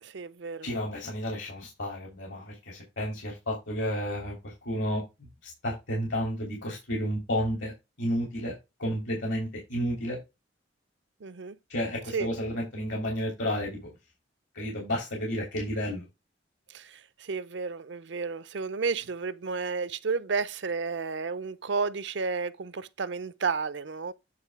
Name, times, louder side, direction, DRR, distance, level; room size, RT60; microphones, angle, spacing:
voice 1, 0.0-0.7 11.2-11.6 12.1-12.3 16.7-24.1, right 4 dB, 70° right, 0.6 m, -32 dB
voice 2, 0.6-5.0 5.4-7.7 8.0-10.2 11.7-13.9 14.5-16.0, equal, 80° left, 3.1 m, -31 dB
9.4 x 3.2 x 4.8 m
head